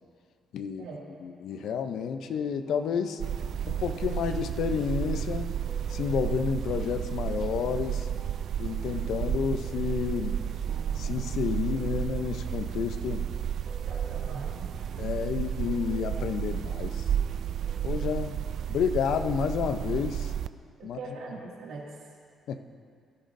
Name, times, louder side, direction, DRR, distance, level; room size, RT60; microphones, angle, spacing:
voice 1, 0.5-0.9 1.2-3.2 3.7-5.5 5.9-8.1 8.6-10.4 11.0-13.3 15.0-17.0 17.8-18.4 18.7-20.3 20.8-21.0 22.5-22.6, left 7 dB, 75° left, 9 dB, 0.6 m, -30 dB
sound 1, 1.5-18.2, right 2 dB, 15° right, 1.0 m, -50 dB
sound 2, 3.2-20.5, right 9 dB, 65° right, 0.3 m, -32 dB
voice 2, 13.9-14.7 20.9-21.9, right 3 dB, 85° right, -3 dB, 2.1 m, -41 dB
18.0 x 10.5 x 2.6 m, 2.2 s
cardioid pair, 90°, 0 cm